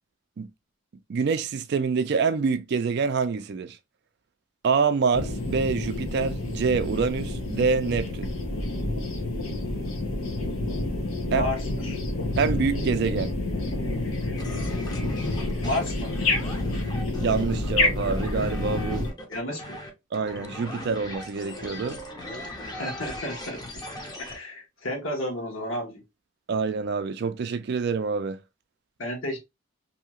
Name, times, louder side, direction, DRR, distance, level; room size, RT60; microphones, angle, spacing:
voice 1, 1.1-3.8 4.6-8.3 11.3-11.4 12.4-13.3 17.2-19.1 20.1-22.0 26.5-28.4, right 5 dB, 55° right, 0.4 m, -26 dB
sound 1, 5.1-19.1, left 2 dB, 90° left, 0.8 m, -29 dB
voice 2, 11.2-12.0 15.6-16.1 19.3-19.8 22.8-23.6 24.2-26.0 29.0-29.4, left 1 dB, 70° left, 1.1 m, -32 dB
sound 2, 14.4-24.4, left 1 dB, 20° left, 0.6 m, -39 dB
2.7 x 2.3 x 2.9 m
head